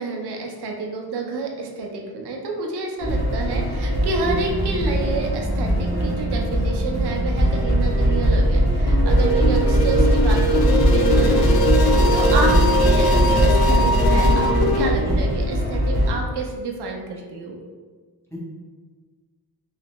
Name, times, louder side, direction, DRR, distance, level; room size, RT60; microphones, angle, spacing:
voice 1, 0.0-17.6, right 3 dB, 80° right, 1 dB, 0.7 m, -29 dB
sound 1, 3.0-16.1, equal, 45° left, 0.9 m, -20 dB
sound 2, 8.9-14.9, equal, 70° left, 0.5 m, -21 dB
voice 2, 9.3-9.5 12.4-12.6 15.0-15.2 18.3-18.4, left 1 dB, 5° left, -7 dB, 0.6 m, -31 dB
3.2 x 3.2 x 2.9 m, 1.5 s
wide cardioid pair, 175°, 39 cm